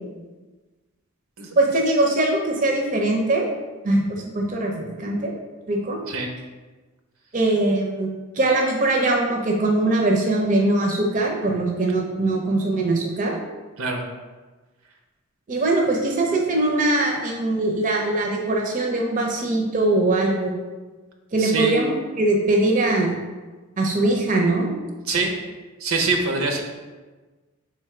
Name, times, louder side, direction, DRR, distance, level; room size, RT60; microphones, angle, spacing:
voice 1, 1.6-3.5 3.8-4.0 4.3-5.3 5.7-6.0 7.3-8.1 8.4-13.4 15.5-20.6 21.3-23.1 23.8-24.7, right 2 dB, 40° right, 0 dB, 0.5 m, -21 dB
voice 2, 21.4-21.8 25.1-25.3 25.8-26.6, right 3 dB, 75° right, 3 dB, 0.7 m, -24 dB
3.4 x 3.3 x 4.7 m, 1.3 s
head